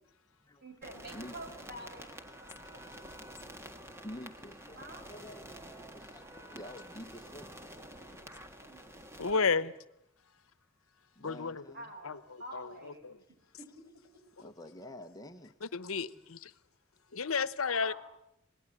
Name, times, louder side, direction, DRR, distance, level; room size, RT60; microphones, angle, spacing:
voice 1, 0.6-2.1 2.3-3.2 4.7-5.1 8.6-8.8 9.2-9.7 11.7-13.1 13.6-13.7 16.1-16.2 17.8-18.0, right 1 dB, 50° right, 6.5 m, -48 dB
sound 1, 0.8-9.3, right 1 dB, 15° right, 1.6 m, -49 dB
voice 2, 4.0-7.8 11.2-11.9 14.4-15.5, left 1 dB, 20° left, 1.1 m, -48 dB
voice 3, 9.2-9.7 11.2-11.6 12.0-12.2 12.5-13.1 15.7-16.5 17.1-17.9, left 5 dB, 85° left, 1.0 m, -32 dB
27.0 x 19.0 x 10.0 m
head